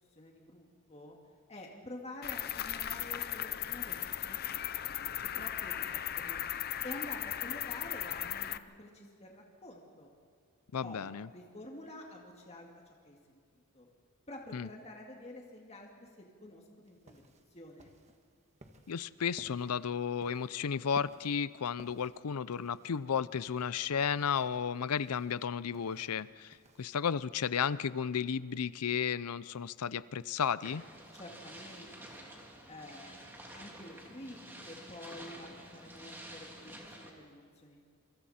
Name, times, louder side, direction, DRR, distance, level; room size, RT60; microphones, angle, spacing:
voice 1, 0.1-1.2 1.5-6.4 6.8-10.1 10.8-13.4 13.7-13.9 14.3-17.9 31.1-32.4 32.7-34.4 34.6-37.8, left 1 dB, 30° left, 0 dB, 2.2 m, -49 dB
Cricket, 2.2-8.6, left 11 dB, 45° left, 0.6 m, -37 dB
voice 2, 10.7-11.3 14.5-14.7 18.9-30.8, left 7 dB, 90° left, 18 dB, 0.5 m, -33 dB
sound 1, 16.8-27.0, right 1 dB, 30° right, 1.5 m, -59 dB
sound 2, 30.6-37.1, right 1 dB, 10° right, 2.6 m, -50 dB
28.0 x 25.0 x 4.3 m, 2.1 s
head